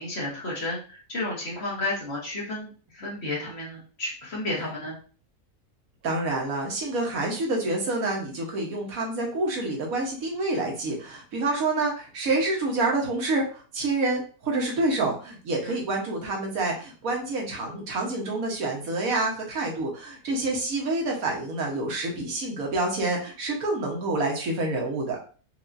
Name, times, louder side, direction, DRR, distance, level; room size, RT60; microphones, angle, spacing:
voice 1, 0.0-5.0 15.6-15.7, left 2 dB, 45° left, -4 dB, 1.5 m, -32 dB
voice 2, 6.0-25.2, right 2 dB, 65° right, -1 dB, 1.5 m, -27 dB
4.7 x 2.7 x 2.6 m, 0.39 s
omnidirectional pair, 1.6 m